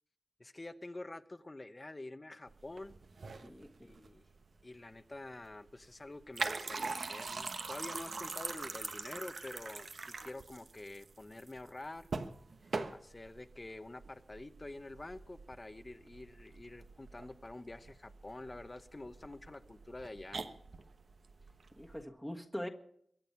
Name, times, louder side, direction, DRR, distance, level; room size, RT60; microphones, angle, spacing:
voice 1, 0.4-2.9 3.8-4.2 4.6-12.1 12.9-20.4, left 2 dB, 25° left, 12 dB, 0.8 m, -47 dB
sound 1, 2.5-22.0, right 4 dB, 65° right, 1.2 m, -44 dB
voice 2, 3.4-3.9 21.8-22.7, equal, ahead, 0 dB, 1.5 m, -42 dB
23.0 x 9.0 x 5.7 m, 0.66 s
wide cardioid pair, 125°, 0 cm